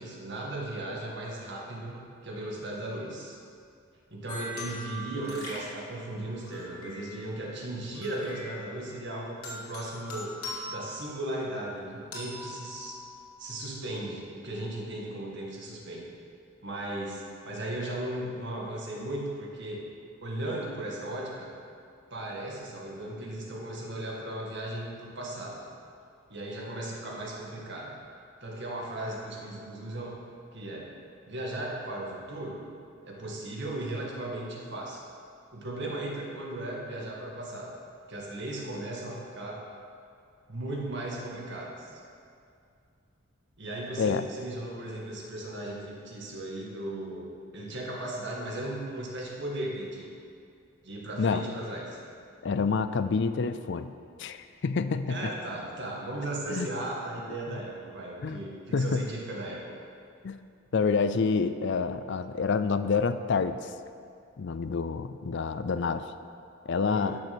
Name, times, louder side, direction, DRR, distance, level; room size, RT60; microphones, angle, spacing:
voice 1, 0.0-2.0 2.2-3.3 4.1-10.3 10.7-13.0 13.4-16.1 16.6-19.8 20.2-21.5 22.1-25.6 26.3-27.9 28.4-30.2 30.5-30.9 31.3-32.6 33.1-35.0 35.5-37.7 38.1-39.6 40.5-42.0 43.6-50.1 50.8-52.0 55.1-59.7 66.9-67.2, right 1 dB, 55° right, -3 dB, 2.1 m, -36 dB
sound 1, 4.3-7.4 8.0-9.0 9.4-11.6 12.1-13.3, left 1 dB, 85° left, 2.6 m, -42 dB
voice 2, 52.4-53.9 54.2-55.2 56.5-56.7 57.5-57.6 58.2-58.4 58.7-59.1 60.2-60.4 60.7-63.7 64.4-66.0 66.7-67.2, left 5 dB, 55° left, 11 dB, 0.4 m, -28 dB
11.5 x 6.9 x 6.2 m, 2.4 s
head